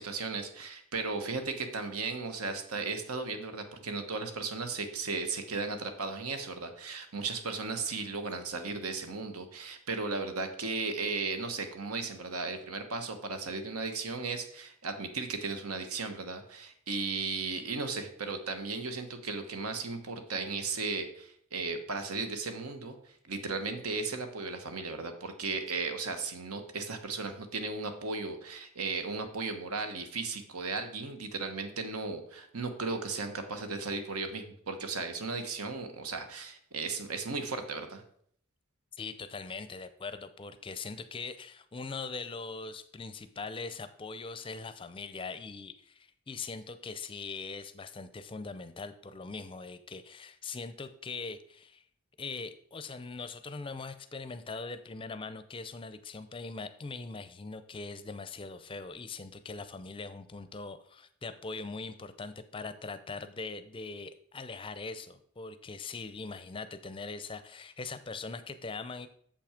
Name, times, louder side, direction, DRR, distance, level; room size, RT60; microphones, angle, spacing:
voice 1, 0.0-23.0 23.2-38.0, right 4 dB, 85° right, 7 dB, 1.2 m, -36 dB
voice 2, 38.9-51.8 52.2-69.1, left 4 dB, 25° left, 11 dB, 0.5 m, -41 dB
7.0 x 5.9 x 5.0 m, 0.65 s
head